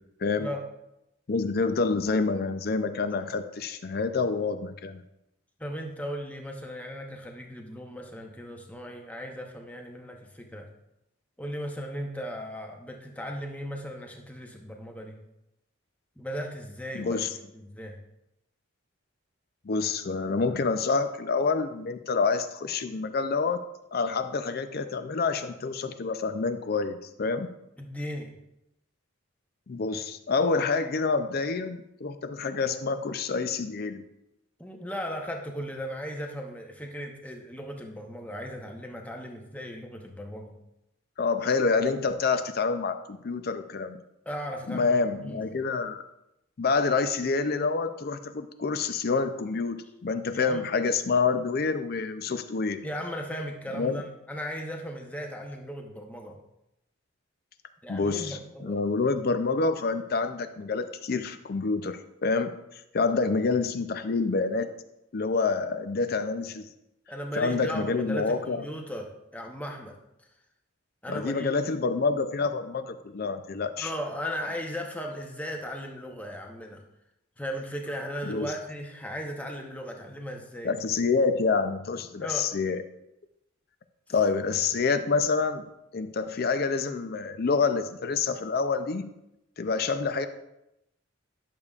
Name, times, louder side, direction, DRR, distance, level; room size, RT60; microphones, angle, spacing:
voice 1, 1.3-5.0 16.9-17.3 19.6-23.6 23.9-27.5 29.7-34.0 41.2-44.0 44.7-46.0 46.6-52.8 53.7-54.0 57.9-64.7 65.1-66.7 67.3-68.7 71.1-73.9 78.2-78.5 80.6-82.8 84.1-85.6 85.9-89.1 89.6-90.3, left 4 dB, 50° left, 10 dB, 0.5 m, -27 dB
voice 2, 5.6-10.7 11.4-15.2 16.2-17.3 17.5-18.0 27.8-28.3 34.6-40.5 44.3-45.4 50.3-50.6 52.8-56.4 57.8-58.8 67.1-70.0 71.0-71.5 73.8-76.8 77.4-80.7 82.2-82.5, equal, 5° left, 2 dB, 0.8 m, -37 dB
10.5 x 6.6 x 2.4 m, 0.86 s
head